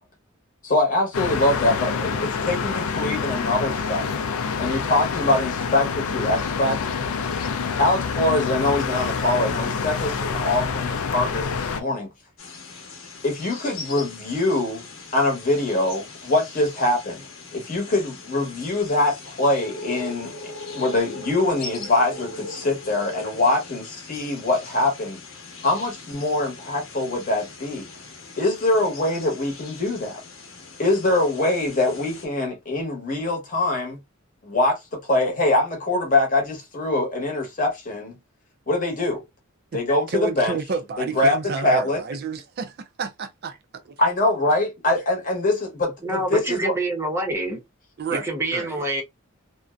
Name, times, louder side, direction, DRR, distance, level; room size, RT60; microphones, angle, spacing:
voice 1, 0.6-4.1 4.6-6.8 7.8-12.1 13.2-17.2 17.5-20.4 20.7-25.2 25.6-27.9 28.4-30.2 30.8-34.0 34.4-38.2 38.7-39.2 39.7-40.6 41.2-41.4 41.6-42.0 44.0-46.7, left 2 dB, 40° left, 0.9 m, -23 dB
sound 1, 1.1-11.8, left 5 dB, 85° left, 0.4 m, -27 dB
sound 2, 12.4-32.3, left 3 dB, 70° left, 0.8 m, -40 dB
voice 2, 40.1-43.6 43.8-43.9 48.0-48.8, right 5 dB, 50° right, 0.4 m, -30 dB
voice 3, 46.0-47.6 48.1-49.0, right 1 dB, 15° right, 0.7 m, -26 dB
2.5 x 2.1 x 2.3 m
head